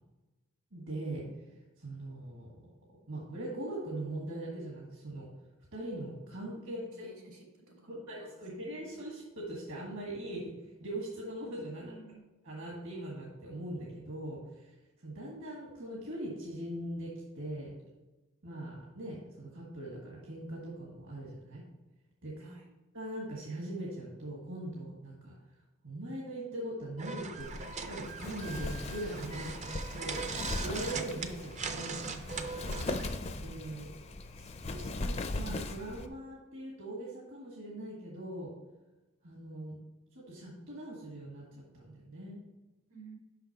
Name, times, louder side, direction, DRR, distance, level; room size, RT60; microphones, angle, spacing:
voice 1, 0.7-1.3 1.8-2.7 3.1-5.3 5.7-7.1 7.9-10.5 10.8-11.9 12.4-14.7 15.0-17.7 18.4-21.6 22.2-22.4 22.9-25.4 25.8-29.5 30.0-30.2 30.6-32.0 33.3-33.9 34.4-38.5 39.2-39.8 40.1-42.4, right 1 dB, 65° right, -2 dB, 1.5 m, -41 dB
voice 2, 6.6-8.7 11.8-12.3 22.4-22.7 30.1-30.7 42.9-43.2, right 3 dB, 85° right, 0 dB, 2.1 m, -54 dB
sound 1, 27.0-33.1, right 4 dB, 35° right, 0.5 m, -40 dB
Wind, 27.4-36.1, left 2 dB, 30° left, 0.4 m, -39 dB
5.8 x 5.8 x 4.6 m, 1.1 s
head